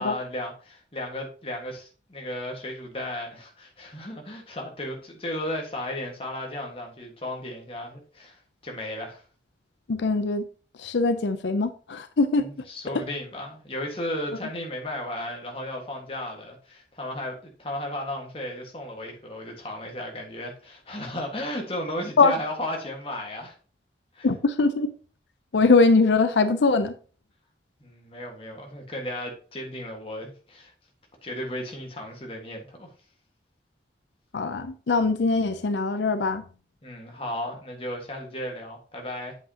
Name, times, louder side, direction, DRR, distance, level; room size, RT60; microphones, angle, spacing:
voice 1, 0.0-9.2 12.4-23.5 24.1-24.3 27.8-30.7 31.2-32.9 36.8-39.4, left 1 dB, 30° left, 1.6 m, -35 dB
voice 2, 9.9-10.4 10.8-12.5 12.9-13.0 22.2-22.3 24.2-24.9 25.5-26.9 34.3-36.4, left 3 dB, 85° left, 0.6 m, -22 dB
8.1 x 7.7 x 2.9 m
head